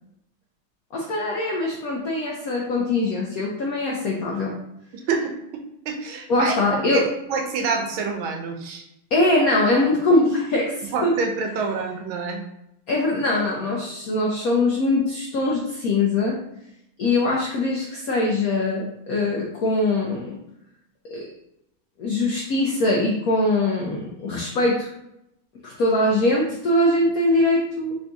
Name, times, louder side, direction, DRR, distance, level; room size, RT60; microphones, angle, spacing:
voice 1, 0.9-4.6 6.3-7.0 9.1-11.1 12.9-16.4 17.0-20.3 21.1-21.3 22.0-24.9 25.6-28.0, left 2 dB, 80° left, -2 dB, 0.8 m, -22 dB
voice 2, 5.1-8.9 10.9-12.4, right 4 dB, 80° right, 3 dB, 1.5 m, -27 dB
3.8 x 2.6 x 3.4 m, 0.81 s
omnidirectional pair, 2.2 m